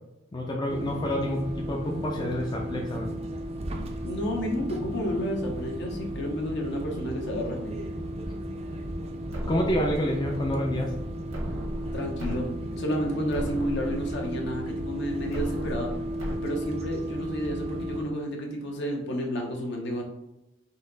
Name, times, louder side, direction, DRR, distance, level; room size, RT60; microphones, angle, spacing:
voice 1, 0.3-3.2 9.5-10.9, equal, 20° left, -1 dB, 0.5 m, -28 dB
sound 1, 0.7-18.0, equal, 30° right, 0.5 m, -34 dB
voice 2, 4.0-7.8 11.9-12.5 12.8-15.9 16.4-20.0, equal, 60° left, 1 dB, 0.9 m, -31 dB
sound 2, 9.3-10.3 11.3-12.3 12.8-12.9 13.3-14.3 15.3-16.3, equal, 90° right, 1.3 m, -35 dB
4.2 x 2.8 x 3.9 m, 0.92 s
head